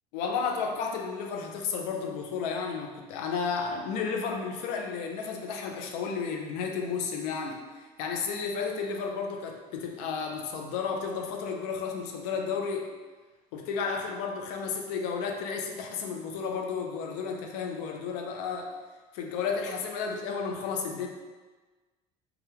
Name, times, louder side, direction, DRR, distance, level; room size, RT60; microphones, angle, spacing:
voice 1, 0.1-12.9 13.5-18.8 19.1-21.1, left 5 dB, 75° left, 2 dB, 0.5 m, -32 dB
2.7 x 2.3 x 3.4 m, 1.3 s
hypercardioid pair, 65°, 20 cm